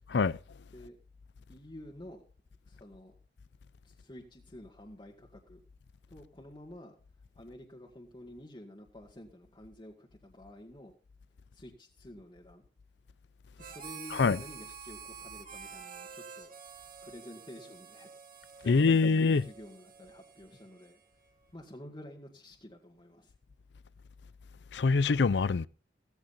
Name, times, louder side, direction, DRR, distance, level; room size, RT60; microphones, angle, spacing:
voice 1, 1.5-2.2 2.7-3.2 3.8-5.6 6.1-7.0 7.4-10.9 11.5-12.6 13.6-16.5 17.0-18.1 18.6-21.0 21.5-23.3, left 1 dB, 25° left, 1.9 m, -50 dB
Harmonica, 13.6-21.3, right 6 dB, 55° right, 2.2 m, -49 dB
voice 2, 14.1-14.4 18.6-19.5 24.7-25.7, left 4 dB, 80° left, 0.5 m, -24 dB
16.0 x 14.5 x 2.7 m
head